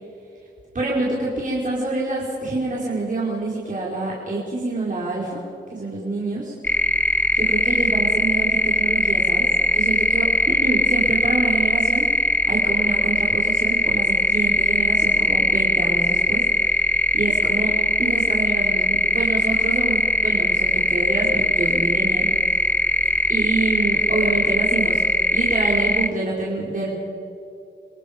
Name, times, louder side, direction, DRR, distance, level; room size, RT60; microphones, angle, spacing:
voice 1, 0.7-5.4 5.7-6.5 7.3-9.5 9.7-12.1 12.5-16.5 17.1-17.7 18.0-22.3 23.3-25.0 25.3-27.0, right 2 dB, 40° right, -5 dB, 4.7 m, -26 dB
sound 1, 6.6-26.1, left 1 dB, 10° left, 0.8 m, -20 dB
29.5 x 18.5 x 5.2 m, 2.6 s
cardioid pair, 70°, 20 cm